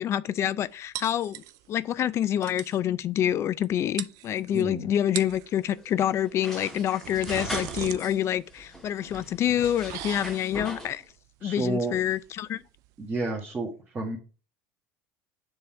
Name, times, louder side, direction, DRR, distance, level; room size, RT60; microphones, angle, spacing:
voice 1, 0.0-1.4 1.7-11.0 11.4-12.6, left 10 dB, 40° left, 0.4 m, -27 dB
sound 1, 0.9-1.8 2.1-2.2 2.4-2.8 3.6-3.7 4.0-4.6 5.0-5.5 6.7-13.3, right 14 dB, 60° right, 0.4 m, -40 dB
voice 2, 4.5-4.9 11.4-12.0 13.0-14.2, right 2 dB, 25° right, 1.7 m, -30 dB
sound 2, 5.3-8.2 8.5-11.0, equal, 5° left, 2.0 m, -40 dB
6.8 x 3.7 x 4.4 m
supercardioid pair, 95°, 7 cm